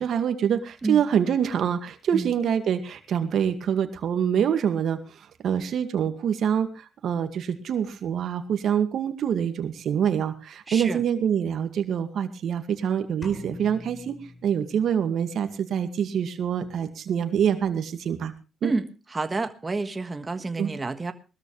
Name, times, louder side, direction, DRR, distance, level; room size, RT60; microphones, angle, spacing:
voice 1, 0.0-5.0 5.4-14.2 14.4-18.3 18.6-18.7 20.6-20.7, right 8 dB, 65° right, 7 dB, 2.1 m, -25 dB
voice 2, 10.7-11.0 18.6-21.1, right 3 dB, 25° right, 8 dB, 1.5 m, -29 dB
sound 1, 13.2-15.1, left 2 dB, 30° left, 4.6 m, -43 dB
20.5 x 13.5 x 3.3 m, 0.30 s
cardioid pair, 90°, 0 cm